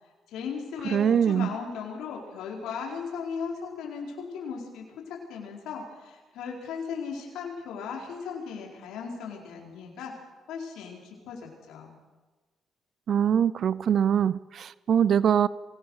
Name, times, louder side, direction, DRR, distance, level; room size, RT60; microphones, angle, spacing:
voice 1, 0.0-10.1 10.5-11.9, left 6 dB, 85° left, -1 dB, 4.6 m, -37 dB
voice 2, 0.9-1.5 13.1-15.5, right 8 dB, 60° right, 19 dB, 0.5 m, -23 dB
24.0 x 18.5 x 6.5 m, 1.3 s
cardioid pair, 90°, 0 cm